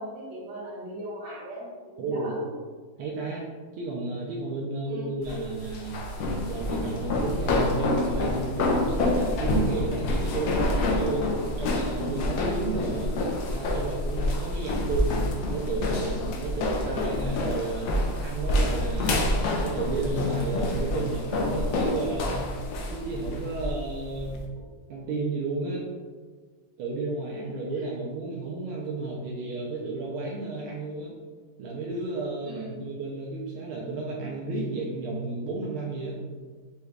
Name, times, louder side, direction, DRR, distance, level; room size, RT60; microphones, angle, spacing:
voice 1, 0.0-1.7 2.0-2.4 4.8-5.1 12.8-13.0 32.4-32.8, right 1 dB, 55° right, -7 dB, 2.0 m, -39 dB
voice 2, 2.0-2.4 3.0-3.5 3.7-13.1 13.5-17.9 18.2-22.5 22.9-24.4 24.9-25.8 26.8-31.1 31.6-36.2, right 3 dB, 85° right, -3 dB, 1.5 m, -32 dB
sound 1, 5.2-24.5, left 2 dB, 75° left, 0.9 m, -27 dB
5.3 x 2.3 x 3.3 m, 1.5 s
omnidirectional pair, 2.4 m